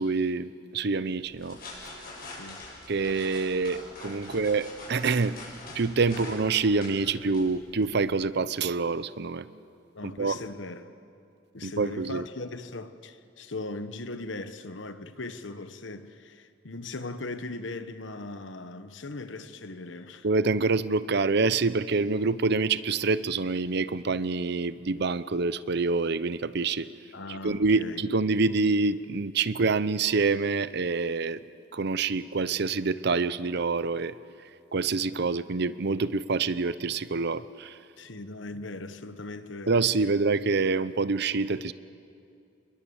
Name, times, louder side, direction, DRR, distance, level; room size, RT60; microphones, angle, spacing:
voice 1, 0.0-1.6 2.9-5.4 5.7-9.5 10.0-10.4 11.6-12.2 20.2-26.9 27.3-31.4 31.7-34.1 34.7-37.8 39.7-41.7, right 4 dB, 60° right, 0.7 m, -26 dB
sound 1, 1.2-8.1, left 2 dB, 50° left, 6.8 m, -45 dB
voice 2, 2.4-2.7 4.3-4.4 6.1-6.3 9.9-10.9 11.5-20.3 27.1-28.0 38.0-39.8, left 2 dB, 75° left, 1.2 m, -39 dB
27.5 x 22.0 x 7.1 m
head